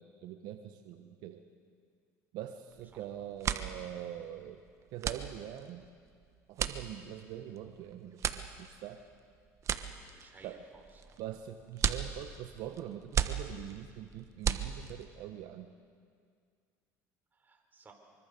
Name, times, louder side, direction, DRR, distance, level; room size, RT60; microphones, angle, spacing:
voice 1, 0.0-1.4 2.3-4.6 4.9-5.8 6.5-9.0 10.4-10.6 11.2-15.7, right 11 dB, 70° right, 6 dB, 1.3 m, -44 dB
sound 1, 2.7-3.0 3.3-15.2, right 8 dB, 40° right, 1.3 m, -36 dB
voice 2, 10.1-11.2 17.3-17.9, right 4 dB, 25° right, 3 dB, 4.5 m, -58 dB
25.0 x 24.0 x 6.9 m, 2.1 s
supercardioid pair, 100°, 7 cm